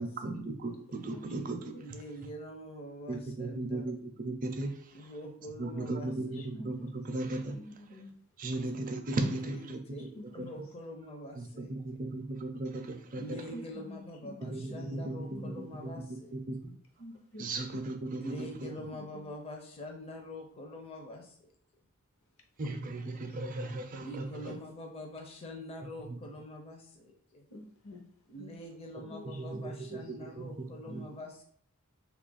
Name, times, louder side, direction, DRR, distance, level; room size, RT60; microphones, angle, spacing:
voice 1, 0.0-1.6 3.1-3.9 4.2-4.9 5.6-6.8 7.0-7.6 8.4-9.8 11.4-11.5 11.7-13.2 14.5-15.4 16.3-16.7 17.4-18.7 22.6-24.5 26.1-26.2 29.4-30.0 30.4-30.5 30.9-31.0, right 2 dB, 35° right, 6 dB, 0.4 m, -36 dB
voice 2, 1.8-3.8 4.9-6.1 9.4-10.1 10.3-11.8 13.1-16.4 18.1-21.5 24.0-27.4 28.3-31.4, left 1 dB, 25° left, 2 dB, 0.5 m, -45 dB
voice 3, 5.8-6.9 7.2-8.1 10.1-10.3 13.5-14.4 14.7-14.8 15.3-15.7 17.0-17.8 19.1-19.2 24.5-24.6 27.5-28.0 28.4-28.5 29.0-29.3 29.5-29.6 29.9-30.0 30.9-31.0, left 1 dB, 65° left, 2 dB, 0.8 m, -47 dB
3.1 x 2.4 x 3.9 m, 0.62 s
head